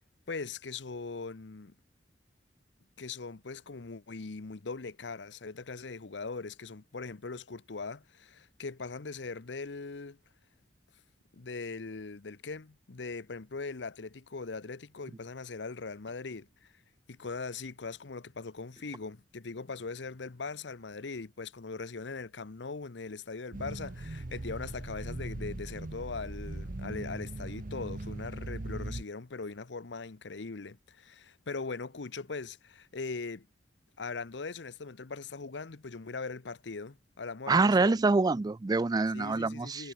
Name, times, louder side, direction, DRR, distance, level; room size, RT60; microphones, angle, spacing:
voice 1, 0.3-1.7 3.0-10.2 11.3-16.7 17.1-33.5 34.0-38.1 39.1-39.9, left 4 dB, 80° left, 0.9 m, -40 dB
sound 1, 23.5-29.0, right 2 dB, 50° right, 1.0 m, -39 dB
voice 2, 37.5-39.9, right 3 dB, 20° right, 0.4 m, -26 dB
head